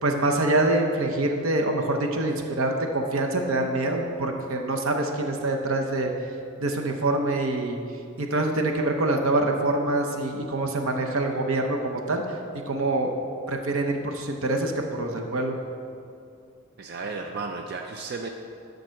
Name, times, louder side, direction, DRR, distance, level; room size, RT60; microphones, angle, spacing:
voice 1, 0.0-6.1 6.6-7.8 8.2-12.2 12.7-13.1 13.5-15.6, right 2 dB, 70° right, 3 dB, 0.8 m, -25 dB
voice 2, 16.8-18.3, right 4 dB, 50° right, 4 dB, 0.4 m, -33 dB
12.0 x 4.0 x 6.4 m, 2.6 s
head